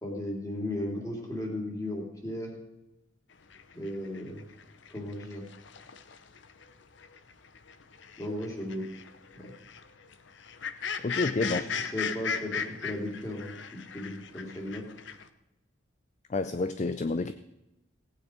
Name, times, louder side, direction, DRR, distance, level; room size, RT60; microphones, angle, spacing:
voice 1, 0.0-2.5 3.7-4.5 4.9-5.4 8.2-8.9 9.3-9.5 11.4-13.5 13.9-14.8, left 1 dB, 15° left, 0 dB, 2.9 m, -35 dB
sound 1, 3.5-6.7 7.0-15.3, left 6 dB, 60° left, 0.8 m, -38 dB
voice 2, 11.0-11.6 16.3-17.3, left 3 dB, 35° left, 11 dB, 0.4 m, -29 dB
17.5 x 9.1 x 5.0 m, 0.91 s
head